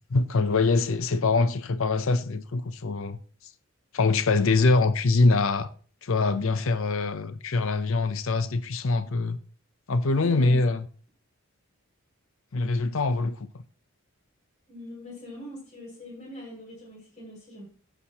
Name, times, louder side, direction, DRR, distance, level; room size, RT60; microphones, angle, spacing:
voice 1, 0.1-3.2 3.9-5.7 6.0-9.4 9.9-10.9 12.5-13.5, left 3 dB, 65° left, 0.6 m, -24 dB
voice 2, 10.1-10.6 14.7-17.7, left 1 dB, 30° left, 6.0 m, -42 dB
12.5 x 8.2 x 2.9 m
head